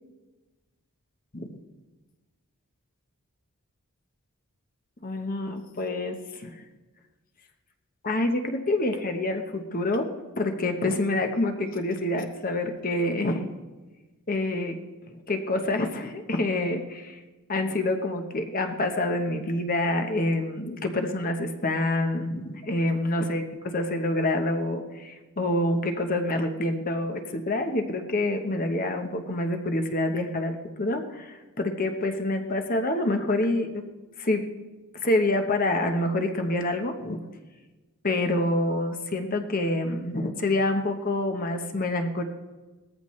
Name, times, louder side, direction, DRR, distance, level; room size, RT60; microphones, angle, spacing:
voice 1, 5.0-6.6 8.0-10.1 10.4-13.5 14.3-14.8 15.1-17.2 17.5-33.9 34.2-34.5 34.9-37.2 38.0-42.2, left 1 dB, 40° left, 6 dB, 1.0 m, -27 dB
18.5 x 14.0 x 3.2 m, 1.2 s
head